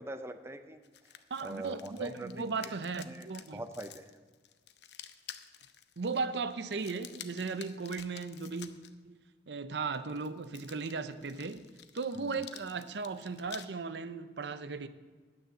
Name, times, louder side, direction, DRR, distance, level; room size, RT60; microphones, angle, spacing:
voice 1, 0.0-1.1 1.4-2.8 3.1-3.3 3.5-4.1 12.2-12.4, right 1 dB, 15° right, 0.5 m, -43 dB
sound 1, 0.8-8.9 9.9-13.7, left 10 dB, 75° left, 0.7 m, -51 dB
voice 2, 1.3-3.6 6.0-8.7 9.0-9.2 9.5-11.6 11.9-14.9, right 4 dB, 75° right, 0.6 m, -36 dB
9.5 x 9.4 x 7.7 m
head